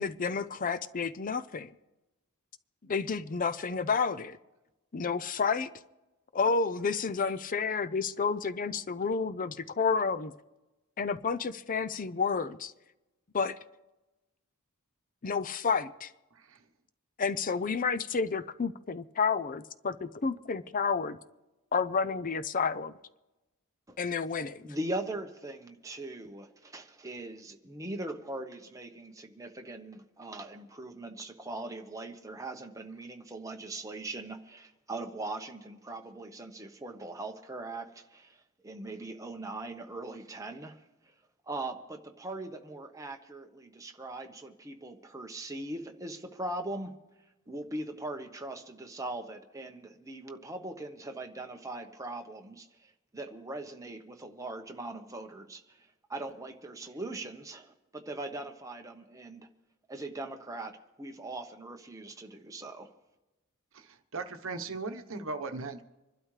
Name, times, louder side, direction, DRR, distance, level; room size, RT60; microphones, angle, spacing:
voice 1, 0.0-1.7 2.9-4.4 4.9-5.7 6.3-10.3 11.0-12.7 13.3-13.6 15.2-16.1 17.2-21.2 21.7-22.9 24.0-24.7, left 5 dB, 40° left, 0.5 m, -30 dB
voice 2, 24.6-40.8 41.5-46.9 47.5-55.8 56.1-59.5 59.9-62.9, right 2 dB, 15° right, 1.1 m, -40 dB
voice 3, 63.7-65.8, right 3 dB, 65° right, 1.1 m, -38 dB
26.0 x 12.0 x 3.3 m
head